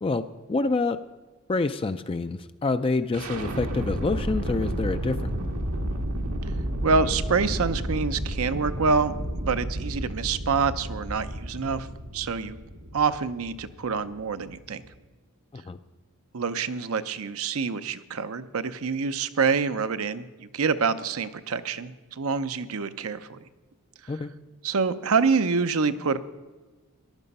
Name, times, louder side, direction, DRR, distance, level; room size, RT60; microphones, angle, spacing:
voice 1, 0.0-1.0 1.5-5.3 15.5-15.8 24.1-24.3, left 3 dB, 25° left, 9 dB, 0.4 m, -27 dB
sound 1, 3.1-15.0, right 1 dB, 85° right, 1.6 m, -32 dB
voice 2, 6.8-9.1 9.4-11.9 12.1-12.6 12.9-14.8 16.3-23.4 24.6-26.2, right 5 dB, 70° right, 12 dB, 0.7 m, -26 dB
14.5 x 11.0 x 5.4 m, 1.3 s
head